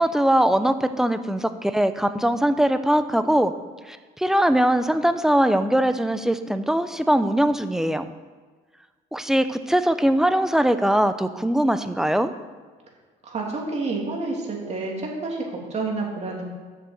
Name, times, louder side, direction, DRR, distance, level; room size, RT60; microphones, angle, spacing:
voice 1, 0.0-3.5 3.9-8.0 9.1-12.3, right 1 dB, 5° right, 10 dB, 0.6 m, -21 dB
voice 2, 13.2-16.4, right 3 dB, 40° right, -1 dB, 2.9 m, -29 dB
7.7 x 6.7 x 7.6 m, 1.4 s
cardioid pair, 110°, 17 cm